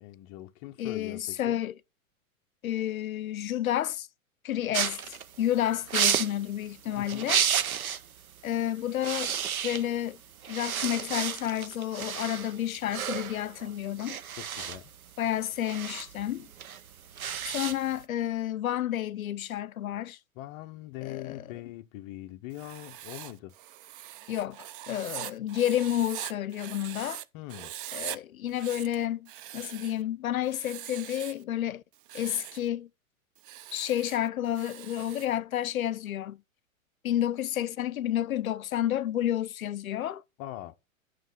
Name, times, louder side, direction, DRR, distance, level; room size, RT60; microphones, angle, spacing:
voice 1, 0.0-1.6 7.0-7.3 14.3-14.9 20.4-23.5 27.3-27.7 35.9-36.0 40.4-40.7, left 15 dB, 25° left, 0.5 m, -42 dB
voice 2, 0.8-1.8 2.6-4.1 4.4-7.4 8.4-9.4 9.6-10.2 10.5-14.2 15.2-16.5 17.4-20.2 21.0-21.4 24.3-27.2 27.9-31.8 32.1-32.9 33.7-36.4 37.0-40.2, left 12 dB, 75° left, 0.6 m, -30 dB
sound 1, 4.7-8.1 8.4-8.6 8.9-10.1 10.4-18.0, right 8 dB, 85° right, 0.6 m, -32 dB
Writing, 22.5-27.2 27.5-28.2 28.5-30.0 30.5-31.4 31.9-32.7 33.4-35.3, right 13 dB, 40° right, 0.5 m, -42 dB
9.0 x 3.1 x 5.3 m
figure-of-eight pair, 100°, 42 cm